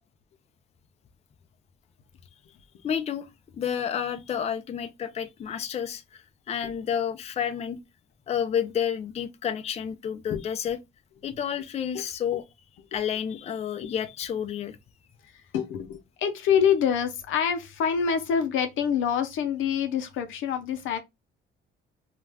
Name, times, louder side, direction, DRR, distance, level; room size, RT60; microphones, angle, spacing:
voice 1, 2.8-3.3 3.6-7.8 8.3-10.8 11.2-12.4 12.9-14.8, left 8 dB, 35° left, 0.4 m, -30 dB
voice 2, 15.3-21.0, left 7 dB, 85° left, 0.6 m, -26 dB
2.4 x 2.1 x 3.3 m
cardioid pair, 90°, 20 cm